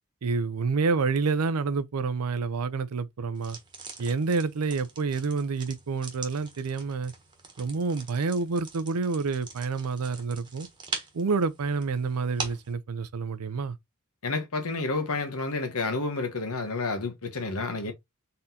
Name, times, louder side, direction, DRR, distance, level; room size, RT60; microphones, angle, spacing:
voice 1, 0.2-3.6 4.0-7.1 7.6-10.7 11.1-13.8, right 4 dB, 85° right, 0.5 m, -28 dB
sound 1, 3.4-12.7, right 4 dB, 20° right, 1.2 m, -42 dB
voice 2, 14.2-17.9, left 3 dB, 70° left, 1.1 m, -30 dB
4.3 x 3.8 x 2.7 m
head